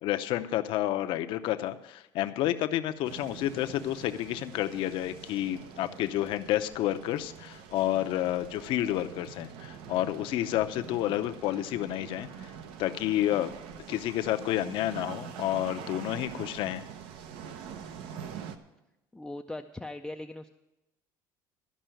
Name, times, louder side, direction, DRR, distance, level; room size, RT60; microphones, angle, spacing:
voice 1, 0.0-12.5 12.8-13.5 13.9-16.8, left 13 dB, 65° left, 9 dB, 0.7 m, -30 dB
sound 1, 3.0-18.6, right 8 dB, 75° right, 0.8 m, -45 dB
voice 2, 19.1-20.5, left 2 dB, 5° left, 4 dB, 0.4 m, -39 dB
13.0 x 5.5 x 9.0 m, 0.94 s
cardioid pair, 135°, 9 cm